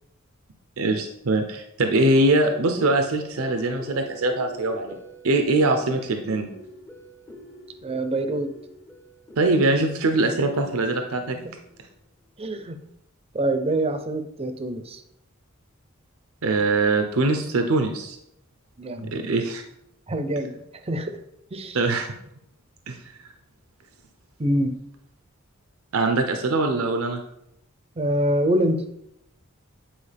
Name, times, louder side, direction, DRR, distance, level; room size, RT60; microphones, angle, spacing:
voice 1, 0.8-5.0 5.2-6.5 9.4-11.4 16.4-18.2 19.0-19.6 21.7-22.1 22.9-23.0 25.9-27.2, right 2 dB, 80° right, 5 dB, 0.7 m, -22 dB
sound 1, 2.4-11.9, left 1 dB, 15° left, 0.7 m, -43 dB
voice 2, 7.8-8.5 12.4-12.8 13.3-15.0 18.8-19.1 20.1-21.2 21.5-21.8 24.4-24.8 28.0-28.8, right 1 dB, 30° right, 8 dB, 0.6 m, -25 dB
8.7 x 4.5 x 3.4 m, 0.78 s
head